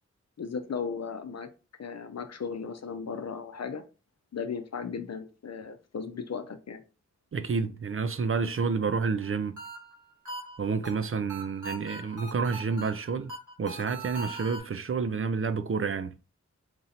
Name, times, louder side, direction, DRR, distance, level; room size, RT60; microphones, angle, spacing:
voice 1, 0.4-1.5 1.8-3.8 4.3-6.8, left 6 dB, 60° left, 0.6 m, -36 dB
voice 2, 7.3-9.6 10.6-16.1, right 5 dB, 45° right, 0.5 m, -29 dB
sound 1, 9.2-14.6, right 3 dB, 80° right, 1.6 m, -41 dB
3.0 x 2.6 x 4.1 m
cardioid pair, 45°, 30 cm